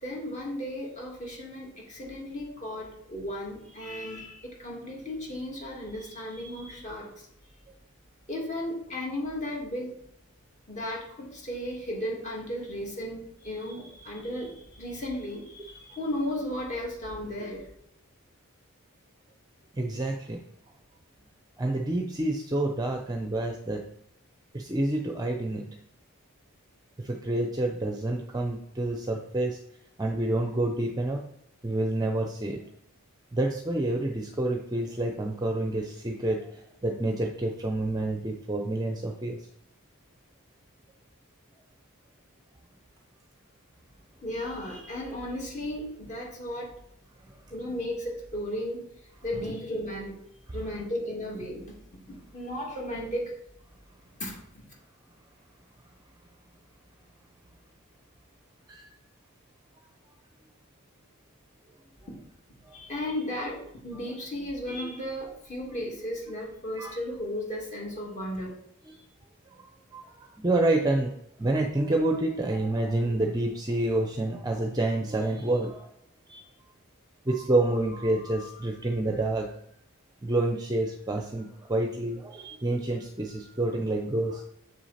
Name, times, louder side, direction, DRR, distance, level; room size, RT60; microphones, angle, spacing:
voice 1, 0.0-7.3 8.3-9.9 10.7-17.6 44.2-46.7 47.5-48.8 49.2-50.2 50.5-51.7 52.1-53.3 54.2-54.4 62.7-68.5, left 1 dB, 35° left, -3 dB, 2.3 m, -35 dB
voice 2, 19.7-20.4 21.6-23.8 24.5-25.6 27.0-29.6 30.0-31.2 31.6-32.6 33.3-39.5 50.6-50.7 58.7-58.9 62.7-62.8 66.8-67.0 68.9-69.0 69.6-71.1 71.4-75.9 76.3-76.4 77.2-79.6 80.2-84.4, right 2 dB, 20° right, 2 dB, 0.6 m, -28 dB
7.3 x 6.1 x 4.2 m, 0.73 s
head